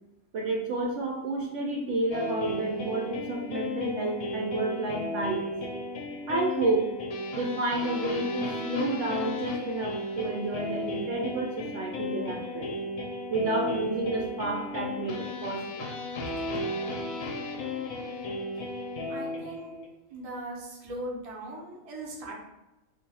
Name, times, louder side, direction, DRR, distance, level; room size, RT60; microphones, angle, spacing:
voice 1, 0.3-5.5 6.3-6.9 7.3-12.7 13.3-15.8, right 2 dB, 65° right, -1 dB, 0.8 m, -30 dB
sound 1, 2.1-19.9, left 2 dB, 75° left, 1.0 m, -35 dB
voice 2, 19.1-19.7 20.1-22.4, right 1 dB, 40° right, -2 dB, 0.5 m, -39 dB
2.5 x 2.3 x 4.0 m, 0.98 s
omnidirectional pair, 1.5 m